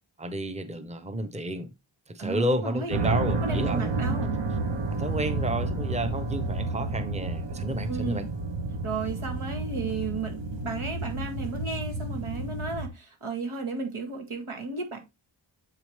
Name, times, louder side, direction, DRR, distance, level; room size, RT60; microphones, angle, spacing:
voice 1, 0.2-1.7 2.1-3.9 4.9-8.2, right 1 dB, 15° right, 0.9 m, -31 dB
voice 2, 2.2-4.3 7.9-8.3 8.8-15.0, right 3 dB, 85° right, 2.3 m, -34 dB
sound 1, 2.9-12.9, right 3 dB, 60° right, 1.1 m, -30 dB
7.7 x 4.9 x 3.2 m
wide cardioid pair, 80°, 49 cm